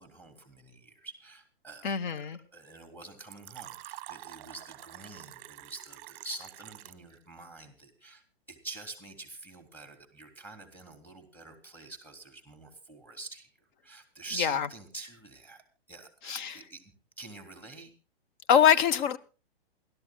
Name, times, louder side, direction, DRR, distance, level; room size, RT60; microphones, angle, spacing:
voice 1, 0.0-2.3 2.5-8.2 8.5-13.5 13.8-15.6 15.9-17.9, right 2 dB, 5° left, 3.5 m, -46 dB
voice 2, 1.8-2.4 14.4-14.7 16.2-16.6 18.5-19.2, left 8 dB, 50° left, 1.2 m, -24 dB
Fill (with liquid), 3.3-7.1, right 16 dB, 30° right, 1.0 m, -47 dB
28.0 x 13.5 x 2.4 m
hypercardioid pair, 130°, 31 cm